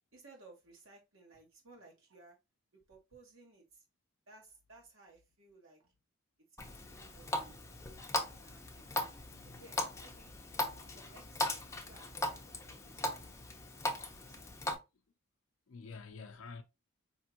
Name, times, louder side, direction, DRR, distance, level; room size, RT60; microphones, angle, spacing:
voice 1, 0.1-2.4 2.9-3.6 4.3-5.9 6.9-7.6 8.3-9.2 9.4-10.3 10.8-11.6 11.9-13.8 14.3-14.5, right 3 dB, 65° right, 1.9 m, -59 dB
Water tap faucet, 6.6-14.7, left 1 dB, 15° left, 0.8 m, -39 dB
voice 2, 9.3-9.6 15.7-16.6, left 4 dB, 65° left, 0.5 m, -48 dB
5.2 x 3.4 x 2.8 m
head